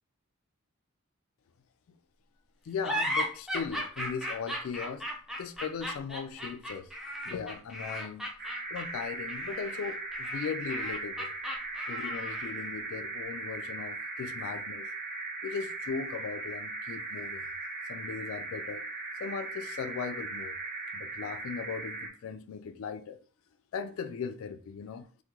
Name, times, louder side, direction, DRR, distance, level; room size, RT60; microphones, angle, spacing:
voice 1, 2.6-5.1 5.4-6.9 7.3-8.3 8.7-11.3 11.9-14.9 15.4-17.5 17.9-18.8 19.2-20.6 20.9-23.2 23.7-25.1, left 6 dB, 65° left, 0.3 m, -38 dB
sound 1, 2.8-12.7, equal, ahead, 0.4 m, -36 dB
sound 2, 8.4-22.1, right 3 dB, 45° right, 0.7 m, -38 dB
3.5 x 2.1 x 2.9 m
head